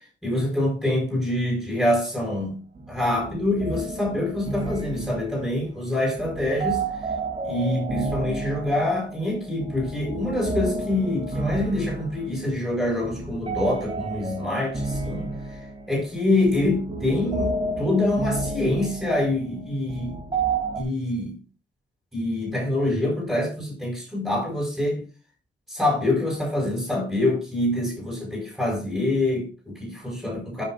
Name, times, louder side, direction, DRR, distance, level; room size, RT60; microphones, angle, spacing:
voice 1, 0.2-2.6 2.9-6.8 7.4-15.3 15.9-20.1 20.8-21.4 22.1-25.0 25.7-30.6, left 1 dB, ahead, 5.9 m, -25 dB
sound 1, 2.7-20.8, right 3 dB, 30° right, 3.1 m, -31 dB
14.0 x 7.8 x 2.6 m
wide cardioid pair, 175°, 19 cm